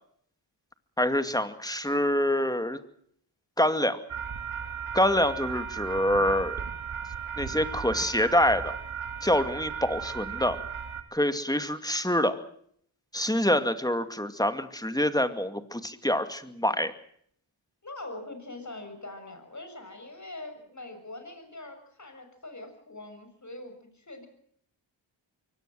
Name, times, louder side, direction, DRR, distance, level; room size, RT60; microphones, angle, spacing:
voice 1, 1.0-2.8 3.6-4.0 4.9-6.6 7.4-8.7 9.2-10.6 11.1-12.4 13.1-16.9, left 1 dB, 10° left, 10 dB, 2.3 m, -26 dB
sound 1, 4.1-11.0, right 7 dB, 85° right, 2.0 m, -36 dB
voice 2, 17.8-24.3, left 2 dB, 35° left, 6 dB, 6.8 m, -43 dB
23.5 x 18.0 x 7.7 m, 0.64 s
cardioid pair, 50°, 48 cm